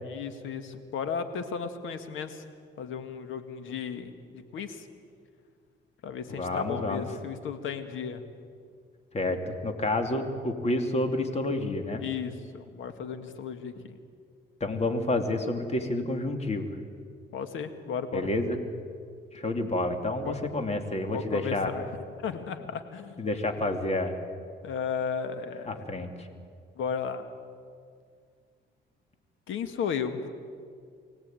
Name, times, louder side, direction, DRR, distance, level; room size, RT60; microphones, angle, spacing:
voice 1, 0.1-2.4 2.8-4.9 6.0-8.2 12.0-14.0 17.3-18.3 20.2-20.4 21.0-21.9 22.2-23.2 24.6-25.9 26.8-27.3 29.5-30.3, left 6 dB, 80° left, 8 dB, 2.0 m, -34 dB
voice 2, 6.3-7.0 9.1-12.0 14.6-16.7 18.1-18.6 19.3-21.7 23.2-24.2 25.6-26.3, left 2 dB, 35° left, 5 dB, 2.8 m, -29 dB
24.5 x 17.5 x 9.2 m, 2.2 s
cardioid pair, 90°, 20 cm